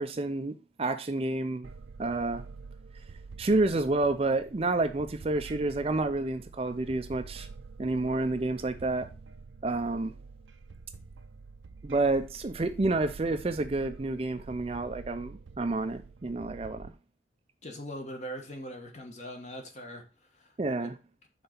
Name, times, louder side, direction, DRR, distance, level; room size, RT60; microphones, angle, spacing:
voice 1, 0.0-1.7 2.0-2.4 3.4-7.5 7.8-9.1 9.6-10.1 11.8-16.9 20.6-21.0, right 2 dB, 30° right, 0.4 m, -29 dB
sound 1, 1.6-16.9, right 4 dB, 80° right, 0.5 m, -47 dB
voice 2, 17.6-20.0 20.4-20.5, equal, 35° left, 1.2 m, -41 dB
5.7 x 3.9 x 5.6 m
head